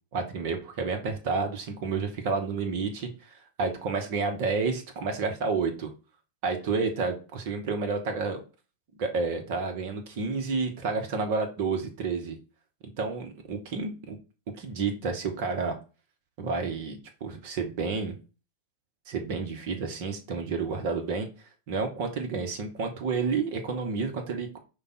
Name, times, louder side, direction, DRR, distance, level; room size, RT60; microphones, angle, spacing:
voice 1, 0.1-5.9 6.4-8.4 9.0-12.4 13.0-14.2 14.6-15.7 16.4-18.2 19.1-21.3 21.7-24.6, right 4 dB, 50° right, 5 dB, 1.1 m, -30 dB
5.2 x 2.4 x 4.1 m, 0.33 s
figure-of-eight pair, 90°, 0 cm